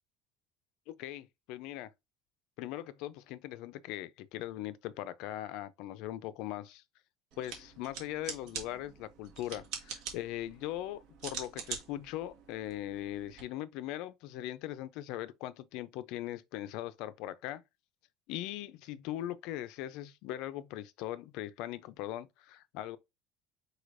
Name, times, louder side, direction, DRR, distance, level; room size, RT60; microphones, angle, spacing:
voice 1, 0.9-1.9 2.6-6.8 7.4-17.6 18.3-23.0, left 13 dB, 65° left, 0.5 m, -40 dB
sound 1, 7.3-13.4, right 7 dB, 60° right, 1.7 m, -45 dB
4.9 x 4.2 x 2.6 m
cardioid pair, 165°, 0 cm